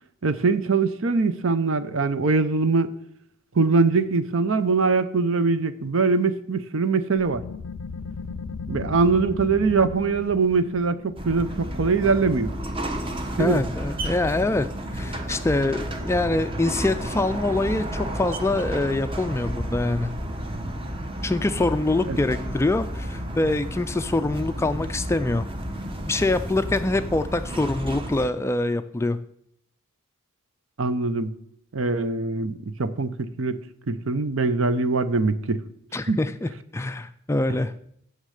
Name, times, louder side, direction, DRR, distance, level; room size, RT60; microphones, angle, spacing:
voice 1, 0.2-2.9 3.6-7.4 8.7-12.5 13.4-13.6 22.1-22.2 30.8-31.3 31.7-33.6 33.9-35.6 36.1-36.2, right 4 dB, 65° right, 13 dB, 0.7 m, -22 dB
sound 1, 7.2-12.5, left 4 dB, 75° left, 0.5 m, -36 dB
sound 2, 11.2-28.3, equal, 25° right, 0.9 m, -31 dB
voice 2, 13.4-14.7 14.9-20.1 21.2-25.5 26.1-29.2 35.9-37.7, left 2 dB, 10° left, 10 dB, 0.3 m, -24 dB
9.6 x 6.6 x 6.5 m, 0.71 s
head